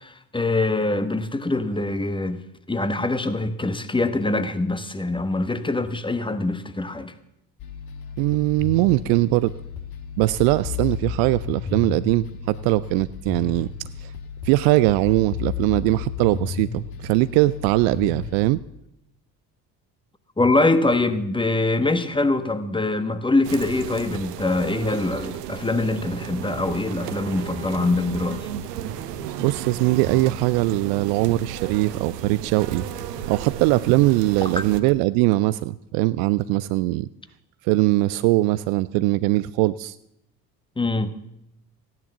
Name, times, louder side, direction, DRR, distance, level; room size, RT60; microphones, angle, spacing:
voice 1, 0.0-2.4 2.7-7.1 20.4-28.5 34.4-34.6 40.8-41.1, left 2 dB, 10° left, 1.2 m, -24 dB
sound 1, 7.6-18.5, left 7 dB, 45° left, 2.0 m, -33 dB
voice 2, 8.2-9.5 10.2-13.7 14.0-14.1 14.4-18.6 29.4-32.8 33.3-37.1 37.6-40.0, right 19 dB, 50° right, 0.5 m, -21 dB
sound 2, 23.4-34.8, right 9 dB, 70° right, 1.1 m, -33 dB
15.5 x 10.5 x 7.0 m
figure-of-eight pair, 55°, 49 cm